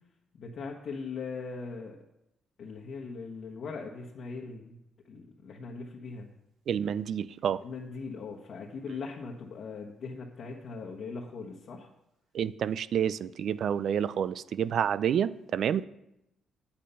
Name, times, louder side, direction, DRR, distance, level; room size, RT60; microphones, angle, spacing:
voice 1, 0.3-2.0 2.6-4.8 5.1-6.3 7.6-11.9, left 4 dB, 65° left, -1 dB, 1.3 m, -40 dB
voice 2, 6.7-7.6 12.3-15.8, right 8 dB, 65° right, 16 dB, 0.4 m, -29 dB
8.7 x 8.3 x 5.6 m, 0.85 s
cardioid pair, 90°, 0 cm